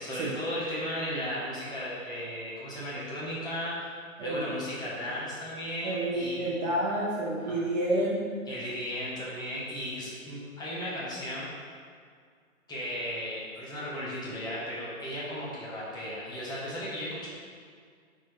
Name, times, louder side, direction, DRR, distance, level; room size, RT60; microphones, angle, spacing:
voice 1, 0.0-3.7 4.2-6.5 7.4-7.6 8.5-11.5 12.7-17.3, equal, 10° left, -8 dB, 1.4 m, -35 dB
voice 2, 5.8-8.3, right 1 dB, 30° right, -4 dB, 0.8 m, -29 dB
8.5 x 4.2 x 3.5 m, 2.1 s
hypercardioid pair, 140°, 42 cm